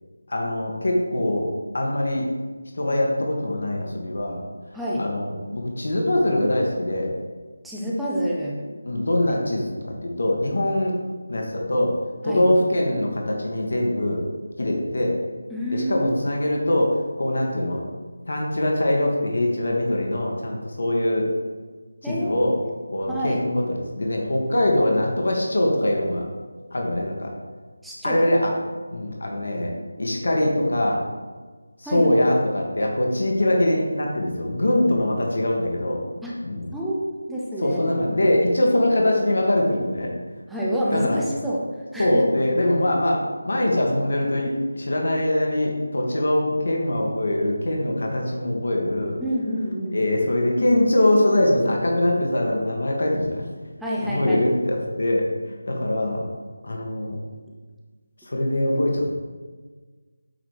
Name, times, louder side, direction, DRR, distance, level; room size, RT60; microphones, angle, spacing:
voice 1, 0.3-1.5 1.7-2.3 2.7-4.4 5.0-7.1 8.8-11.0 11.3-11.9 12.2-14.2 14.6-15.2 15.7-17.8 18.3-21.3 22.0-22.6 22.9-26.3 26.7-27.3 28.0-28.5 28.9-31.0 31.8-36.0 36.4-36.7 37.6-40.1 40.9-41.2 42.0-49.2 49.9-53.5 54.0-56.2 56.6-57.2 58.3-59.1, left 1 dB, 65° left, 0 dB, 1.7 m, -23 dB
voice 2, 4.7-5.1 7.6-8.7 12.2-12.5 15.5-16.1 22.0-22.7 23.1-23.4 27.8-28.3 31.8-32.1 36.2-36.3 36.7-37.8 40.5-41.6 41.9-42.2 49.2-50.0 53.8-54.4, equal, ahead, -7 dB, 0.7 m, -28 dB
8.5 x 4.0 x 4.9 m, 1.4 s
figure-of-eight pair, 170°, 0 cm